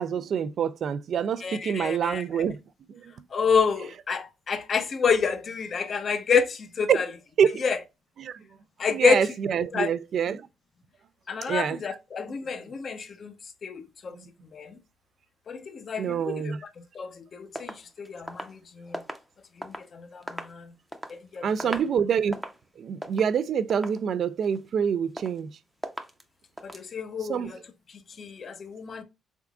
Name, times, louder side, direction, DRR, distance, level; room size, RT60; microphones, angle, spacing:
voice 1, 0.0-2.6 6.9-7.0 7.4-7.6 8.2-8.4 8.9-10.4 11.5-11.8 16.0-16.6 21.4-22.4 22.8-25.5 27.3-27.5, right 7 dB, 60° right, 0.3 m, -26 dB
voice 2, 1.4-2.5 3.3-7.1 7.6-7.8 8.8-9.3 9.7-9.9 11.3-13.3 13.6-14.2 14.5-14.8 15.5-16.5 16.9-19.0 19.6-20.7 21.1-21.7 26.6-27.6 28.2-29.0, left 6 dB, 50° left, 0.6 m, -28 dB
sound 1, 17.6-19.9 20.2-21.2 21.5-22.0 22.2-22.7 23.0-23.3 23.7-24.1 24.4-24.9 25.2-25.5 25.8-26.2 26.6-26.9, right 1 dB, 5° right, 0.6 m, -39 dB
3.6 x 3.5 x 2.3 m
cardioid pair, 90°, 0 cm